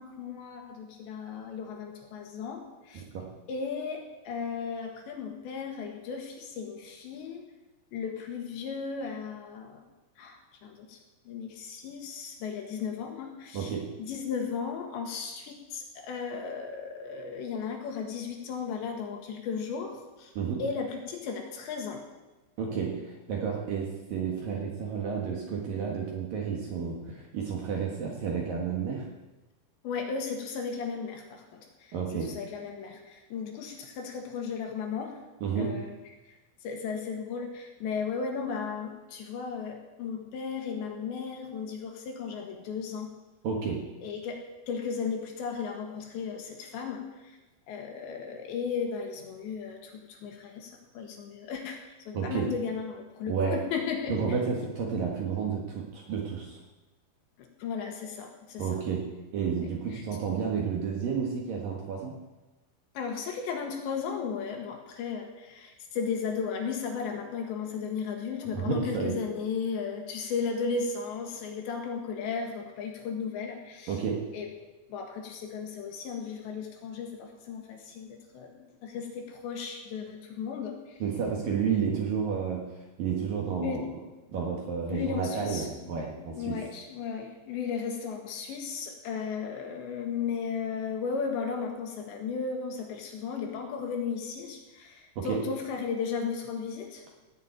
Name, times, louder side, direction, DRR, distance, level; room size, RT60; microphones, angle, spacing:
voice 1, 0.0-3.0 3.5-7.5 7.9-9.8 10.2-11.0 11.3-13.7 14.0-20.3 20.6-22.0 29.8-35.2 35.6-35.9 36.3-36.4 36.6-43.1 44.0-47.4 47.7-51.8 52.1-54.1 57.4-58.8 59.9-60.0 63.0-74.0 74.3-74.5 74.9-81.0 83.6-83.8 84.9-85.7 86.2-97.0, left 6 dB, 65° left, 3 dB, 3.7 m, -35 dB
voice 2, 13.5-13.9 20.4-20.7 22.6-29.1 31.9-32.3 35.4-35.8 43.4-43.8 52.1-52.5 53.3-53.6 54.1-56.6 58.6-59.1 59.3-62.2 68.5-69.2 73.9-74.3 81.0-82.7 83.0-83.9 84.3-86.6 95.2-95.5, right 6 dB, 60° right, 0 dB, 2.7 m, -31 dB
17.5 x 7.3 x 8.9 m, 1.1 s
omnidirectional pair, 5.7 m